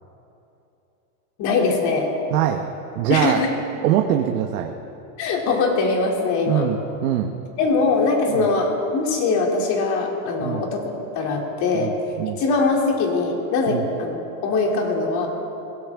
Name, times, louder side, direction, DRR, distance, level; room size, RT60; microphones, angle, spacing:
voice 1, 1.4-2.1 3.1-3.5 5.2-6.7 7.6-11.9 12.4-14.2 14.4-15.3, left 3 dB, 45° left, 0 dB, 2.9 m, -22 dB
voice 2, 2.3-2.6 2.9-3.4 3.8-4.7 6.5-7.3 8.3-8.5 10.4-10.6 11.7-12.4 13.7-13.8, right 11 dB, 80° right, 3 dB, 1.1 m, -23 dB
22.5 x 17.5 x 3.6 m, 2.9 s
supercardioid pair, 140°, 42 cm